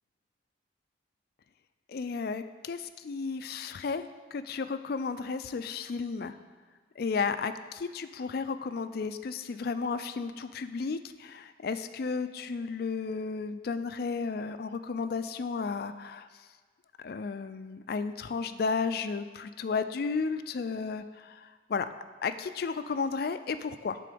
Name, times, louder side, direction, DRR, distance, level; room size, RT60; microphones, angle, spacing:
voice 1, 1.9-6.3 7.0-16.5 17.0-21.9 22.2-24.0, left 5 dB, 50° left, 11 dB, 0.3 m, -33 dB
11.0 x 3.8 x 5.1 m, 1.5 s
head